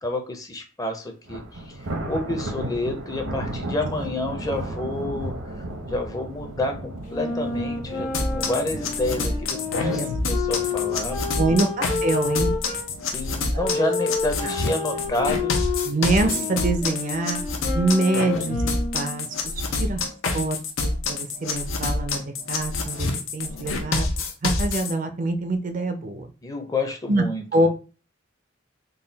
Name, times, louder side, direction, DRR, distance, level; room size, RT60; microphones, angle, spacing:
voice 1, 0.0-11.6 13.1-15.8 16.2-16.5 26.4-27.7, left 2 dB, 20° left, 4 dB, 0.6 m, -29 dB
Thunder, 1.3-14.6 14.9-15.2 15.6-15.7 16.6-17.2, right 1 dB, 85° right, 0.9 m, -35 dB
sound 1, 7.1-12.9 13.6-19.2, left 4 dB, 40° left, 1.0 m, -30 dB
sound 2, 8.1-24.9, left 3 dB, 85° left, 0.7 m, -27 dB
voice 2, 11.4-12.5 13.5-13.8 14.4-14.6 15.8-17.4 17.7-19.3 19.7-20.0 20.3-24.1 24.4-26.3 27.1-27.2 27.5-27.7, right 2 dB, 40° right, 7 dB, 0.5 m, -25 dB
3.8 x 2.2 x 3.9 m, 0.36 s
head